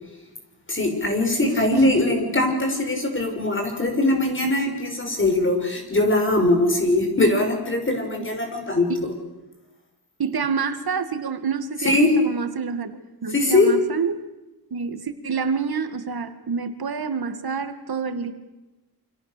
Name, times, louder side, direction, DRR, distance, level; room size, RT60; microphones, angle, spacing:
voice 1, 0.7-9.1 11.8-12.1 13.3-13.7, left 2 dB, 30° left, 4 dB, 6.4 m, -21 dB
voice 2, 1.4-1.8 10.2-12.9 13.2-14.2 14.7-18.3, right 5 dB, 70° right, 9 dB, 2.2 m, -27 dB
29.0 x 26.5 x 6.9 m, 1.0 s
wide cardioid pair, 145°, 38 cm